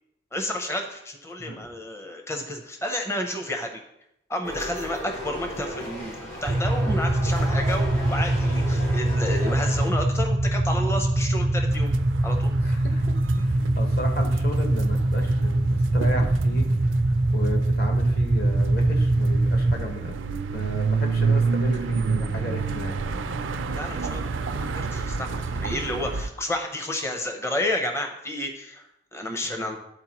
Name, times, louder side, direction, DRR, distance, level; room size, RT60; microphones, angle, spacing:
voice 1, 0.3-3.8 4.3-11.9 12.2-12.5 23.7-24.2 24.5-29.8, left 1 dB, 15° left, 4 dB, 0.6 m, -31 dB
sound 1, 4.4-9.9, equal, 90° left, 2.4 m, -35 dB
sound 2, 6.5-19.8, right 1 dB, 25° right, 0.3 m, -23 dB
sound 3, 11.7-26.3, right 4 dB, 85° right, 0.4 m, -30 dB
voice 2, 12.6-16.6 16.9-17.0 17.3-20.1 20.5-23.0 29.5-29.8, equal, 55° left, 2 dB, 1.2 m, -34 dB
12.0 x 4.3 x 3.0 m, 0.83 s
head